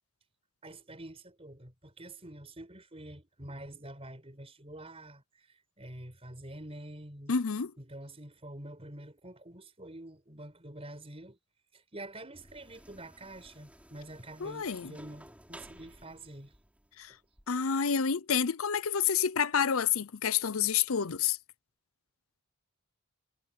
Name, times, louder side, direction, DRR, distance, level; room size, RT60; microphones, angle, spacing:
voice 1, 0.6-7.4 7.8-11.4 11.7-16.5 17.1-17.2, right 1 dB, 25° right, 5.3 m, -47 dB
voice 2, 7.3-7.7 14.4-14.9 17.0-17.1 17.5-21.4, left 7 dB, 70° left, 0.7 m, -29 dB
sound 1, 12.3-17.5, right 1 dB, 5° right, 4.4 m, -55 dB
head